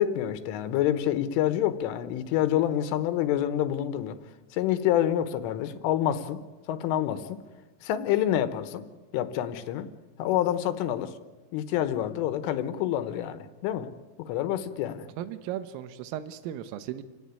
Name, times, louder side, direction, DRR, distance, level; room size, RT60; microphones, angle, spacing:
voice 1, 0.0-4.2 4.5-6.4 6.7-7.4 7.8-8.9 9.1-9.9 10.2-11.2 11.5-13.9 14.2-15.1, left 11 dB, 80° left, 11 dB, 3.5 m, -27 dB
voice 2, 15.2-17.0, right 11 dB, 85° right, 11 dB, 3.8 m, -36 dB
29.5 x 17.5 x 9.6 m, 1.2 s
omnidirectional pair, 5.8 m